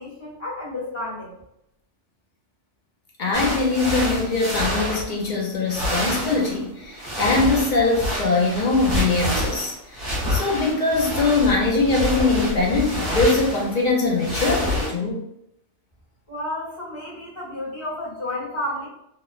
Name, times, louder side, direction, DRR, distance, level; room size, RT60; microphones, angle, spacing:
voice 1, 0.0-1.3 16.3-18.9, left 1 dB, 25° left, -8 dB, 1.1 m, -31 dB
voice 2, 3.2-15.2, left 3 dB, 55° left, -2 dB, 0.5 m, -22 dB
sound 1, 3.3-5.4 5.7-14.9, left 1 dB, 50° right, 1.3 m, -27 dB
3.0 x 2.0 x 2.3 m, 0.79 s
omnidirectional pair, 1.2 m